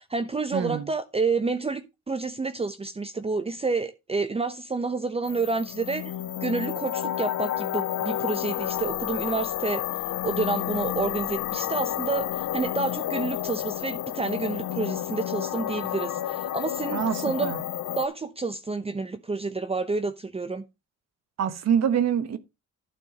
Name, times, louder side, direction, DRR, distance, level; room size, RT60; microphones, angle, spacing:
voice 1, 0.0-6.1 6.4-9.8 10.2-17.5 18.0-20.6, right 3 dB, 20° right, 0.9 m, -29 dB
voice 2, 0.5-0.9 16.9-17.6 21.4-22.4, right 8 dB, 60° right, 1.3 m, -25 dB
sound 1, 5.2-18.1, left 13 dB, 75° left, 0.7 m, -30 dB
12.0 x 4.6 x 5.2 m
cardioid pair, 90°, 30 cm